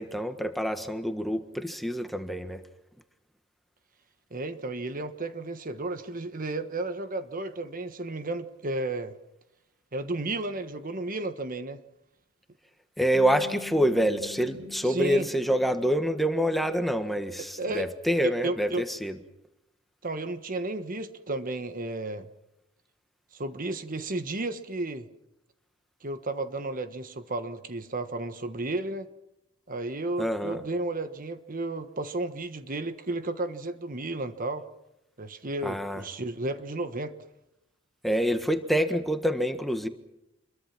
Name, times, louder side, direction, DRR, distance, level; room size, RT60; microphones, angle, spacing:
voice 1, 0.0-2.6 13.0-19.1 30.2-30.6 35.6-36.0 38.0-39.9, equal, ahead, 7 dB, 1.5 m, -26 dB
voice 2, 4.3-9.2 9.9-11.8 14.8-15.3 17.6-17.9 18.2-18.8 20.0-22.3 23.3-25.1 26.0-29.1 29.7-34.6 35.2-37.1, right 2 dB, 40° right, 9 dB, 1.3 m, -33 dB
Bass guitar, 13.1-17.4, left 6 dB, 70° right, 3.7 m, -46 dB
27.5 x 22.5 x 6.0 m, 0.89 s
head